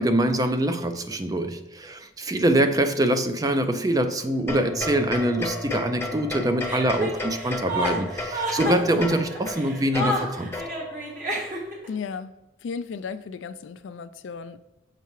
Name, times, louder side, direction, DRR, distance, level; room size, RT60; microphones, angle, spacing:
voice 1, 0.0-10.5, right 1 dB, 20° right, 8 dB, 0.4 m, -24 dB
voice 2, 2.4-2.7 11.9-12.3 12.6-14.6, left 5 dB, 70° left, 12 dB, 0.3 m, -35 dB
sound 1, 4.5-11.0, left 2 dB, 15° left, 0.7 m, -33 dB
sound 2, 4.7-11.8, right 1 dB, 85° right, 0.8 m, -43 dB
Chuckle chortle, 6.6-11.9, equal, 40° right, 1.4 m, -30 dB
6.7 x 5.6 x 3.1 m, 1.0 s
head